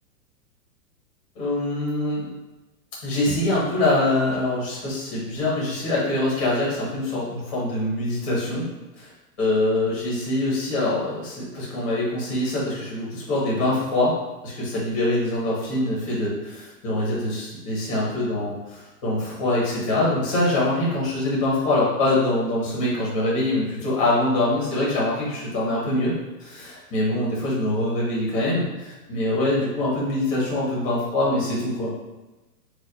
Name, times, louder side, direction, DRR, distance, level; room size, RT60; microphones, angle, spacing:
voice 1, 1.3-2.3 3.0-8.7 9.0-9.1 9.4-14.1 14.4-26.1 26.4-31.9, left 1 dB, 20° left, -7 dB, 0.8 m, -24 dB
4.2 x 2.3 x 2.5 m, 1.0 s
hypercardioid pair, 175°, 49 cm